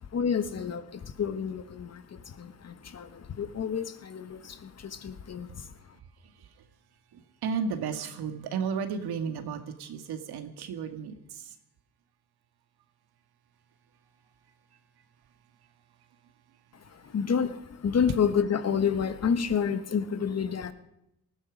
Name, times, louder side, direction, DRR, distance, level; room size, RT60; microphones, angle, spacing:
voice 1, 0.0-5.9 16.7-20.7, left 7 dB, 40° left, 10 dB, 1.3 m, -29 dB
voice 2, 6.2-6.7 7.1-11.6, right 6 dB, 75° right, 7 dB, 2.0 m, -34 dB
19.5 x 14.5 x 5.2 m, 0.83 s
cardioid pair, 95°, 39 cm